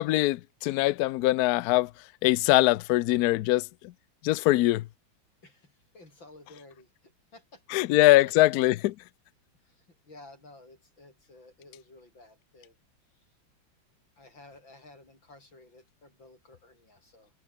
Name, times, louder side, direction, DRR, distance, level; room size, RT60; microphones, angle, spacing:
voice 1, 0.0-1.9 2.2-3.6 4.2-4.8 7.7-8.9, left 17 dB, 85° left, 0.8 m, -22 dB
voice 2, 5.4-7.6 8.2-8.3 9.6-12.8 14.2-17.3, left 2 dB, 65° left, 8.9 m, -53 dB
omnidirectional pair, 2.2 m